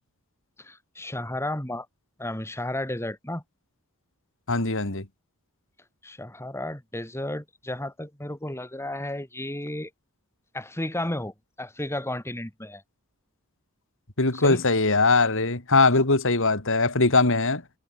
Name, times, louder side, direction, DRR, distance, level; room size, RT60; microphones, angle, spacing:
voice 1, 0.6-1.9 2.2-3.4 6.0-9.9 10.5-12.8 14.3-14.6, left 1 dB, 10° left, 3.0 m, -33 dB
voice 2, 4.5-5.0 14.2-17.6, left 3 dB, 60° left, 3.6 m, -21 dB
head